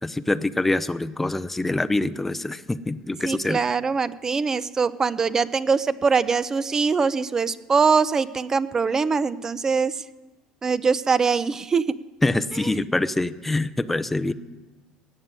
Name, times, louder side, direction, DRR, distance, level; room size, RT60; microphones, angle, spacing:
voice 1, 0.0-3.6 12.2-14.3, left 2 dB, 10° left, 14 dB, 0.6 m, -25 dB
voice 2, 3.2-10.0 10.6-12.0 12.6-12.7, right 5 dB, 25° right, 16 dB, 0.6 m, -23 dB
17.0 x 6.8 x 9.0 m, 1.2 s
supercardioid pair, 105°, 2 cm